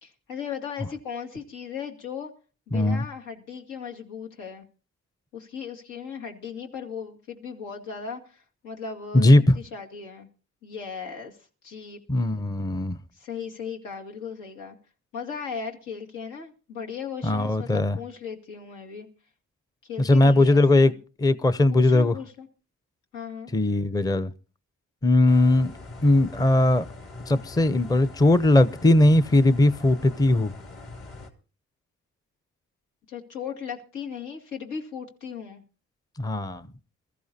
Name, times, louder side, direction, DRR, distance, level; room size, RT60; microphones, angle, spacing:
voice 1, 0.0-2.3 2.7-4.7 5.3-10.3 10.6-12.0 13.1-14.8 15.1-19.1 19.8-21.0 21.7-22.5 23.1-23.5 33.1-35.6, left 6 dB, 85° left, 2.4 m, -37 dB
voice 2, 2.7-3.0 9.1-9.6 12.1-13.0 17.2-18.0 20.0-20.9 21.2-22.1 23.5-24.3 25.0-25.7 26.0-26.8 27.3-30.5 36.2-36.7, left 1 dB, 10° left, 0.6 m, -19 dB
sound 1, 25.3-31.3, left 2 dB, 50° left, 2.7 m, -42 dB
21.5 x 14.0 x 2.8 m
cardioid pair, 90°, 30 cm